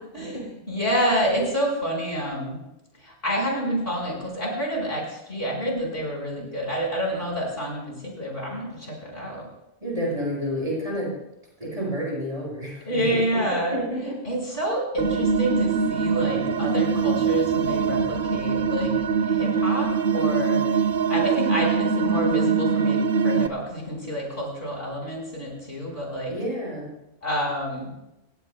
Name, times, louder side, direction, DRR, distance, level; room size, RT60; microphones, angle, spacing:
voice 1, 0.7-2.6 3.0-9.5 12.9-13.8 14.2-18.9 19.3-26.3 27.2-27.9, equal, 55° left, -1 dB, 5.3 m, -28 dB
voice 2, 9.8-11.1 11.6-13.4 13.7-14.2 26.3-26.9, equal, 30° right, -5 dB, 8.1 m, -30 dB
sound 1, 15.0-23.5, right 5 dB, 55° right, 0.8 m, -23 dB
28.0 x 17.0 x 2.3 m, 0.89 s
omnidirectional pair, 1.2 m